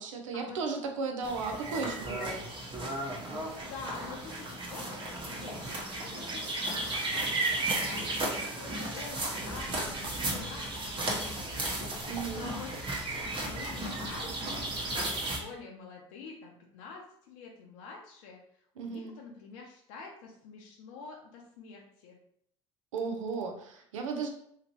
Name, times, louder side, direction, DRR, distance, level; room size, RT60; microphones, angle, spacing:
voice 1, 0.0-2.4 12.1-12.5 18.8-19.1 22.9-24.3, right 4 dB, 85° right, 4 dB, 0.6 m, -35 dB
sound 1, 1.2-15.4, right 2 dB, 30° right, 1.1 m, -34 dB
voice 2, 3.6-6.4 6.7-11.1 11.4-12.0 12.3-12.7 13.2-18.4 18.8-22.2, left 4 dB, 70° left, 0 dB, 0.6 m, -47 dB
2.9 x 2.8 x 2.9 m, 0.68 s
hypercardioid pair, 80°, 16 cm